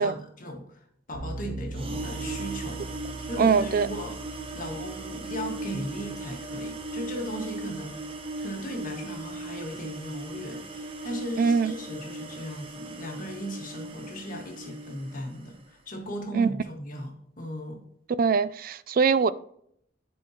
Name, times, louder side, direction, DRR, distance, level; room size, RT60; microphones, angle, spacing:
voice 1, 0.0-2.8 3.2-17.8, equal, 50° left, 1.5 m, -37 dB
sound 1, 1.1-10.0, right 2 dB, 65° right, 1.8 m, -42 dB
sound 2, 1.7-15.6, right 2 dB, 30° right, 0.9 m, -38 dB
voice 2, 3.4-3.9 11.4-11.7 16.3-16.5 18.2-19.3, right 5 dB, 50° right, 0.4 m, -22 dB
11.0 x 4.5 x 2.8 m
head